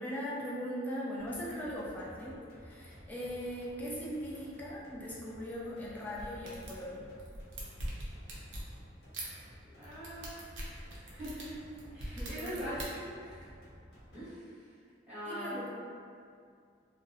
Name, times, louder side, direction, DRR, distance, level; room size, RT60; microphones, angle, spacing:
voice 1, 0.0-7.1 12.2-12.9 15.3-15.7, equal, 10° left, -6 dB, 0.3 m, -40 dB
sound 1, 1.2-14.2, equal, 60° left, 0.8 m, -54 dB
sound 2, 6.1-6.8 7.2-8.7 9.1-9.3 9.8-12.8, right 1 dB, 80° right, 0.6 m, -41 dB
voice 2, 9.6-10.4 11.1-11.6 11.9-13.5 14.1-14.7 15.1-15.7, equal, 5° right, -15 dB, 1.0 m, -42 dB
2.6 x 2.0 x 2.5 m, 2.3 s
head